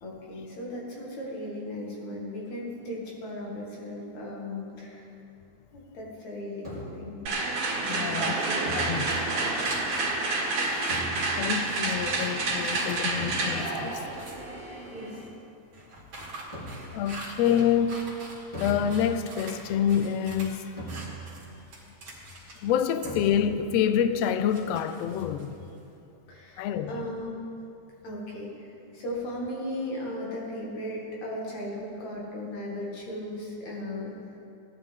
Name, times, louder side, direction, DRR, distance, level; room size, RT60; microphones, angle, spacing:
voice 1, 0.0-5.1 5.7-7.2 7.8-9.0 10.3-10.7 14.9-15.3 16.4-16.6 26.3-27.4 28.0-34.4, left 1 dB, 65° left, 3.5 m, -37 dB
sound 1, 6.6-7.2 8.7-9.5 10.9-11.7 13.2-13.9 16.5-17.1 18.5-19.4 20.8-21.6 23.0-23.7, right 1 dB, 10° left, 2.9 m, -39 dB
sound 2, 7.3-15.2, right 3 dB, 80° right, 3.2 m, -29 dB
voice 2, 7.8-8.3 8.7-9.1 11.4-14.1 16.9-18.2 18.6-20.7 22.6-25.6 26.6-27.0, left 8 dB, 85° left, 1.4 m, -27 dB
sound 3, 9.0-14.6 15.7-19.6 19.9-20.5 20.9-22.7 23.0-23.1 24.2-25.8, right 2 dB, 45° right, 2.8 m, -44 dB
17.5 x 11.0 x 3.6 m
omnidirectional pair, 3.5 m